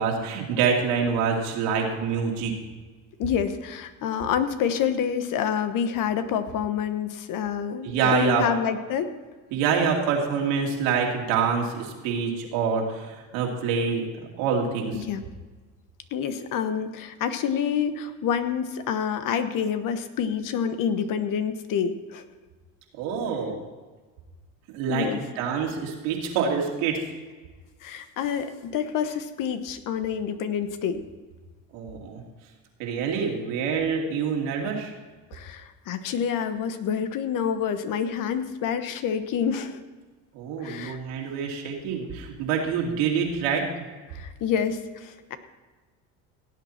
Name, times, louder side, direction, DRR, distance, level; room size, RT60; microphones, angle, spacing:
voice 1, 0.0-2.5 7.8-8.5 9.5-14.1 14.4-15.0 22.9-23.6 24.7-25.1 25.4-27.0 31.7-32.2 32.8-34.9 40.3-43.7, right 6 dB, 85° right, 0 dB, 2.8 m, -26 dB
voice 2, 3.2-9.1 14.9-15.2 16.1-22.2 24.9-25.2 27.8-31.0 35.3-39.8 40.6-41.0 44.1-45.4, left 8 dB, 60° left, 10 dB, 1.2 m, -27 dB
17.0 x 8.4 x 4.4 m, 1.3 s
supercardioid pair, 95°, 37 cm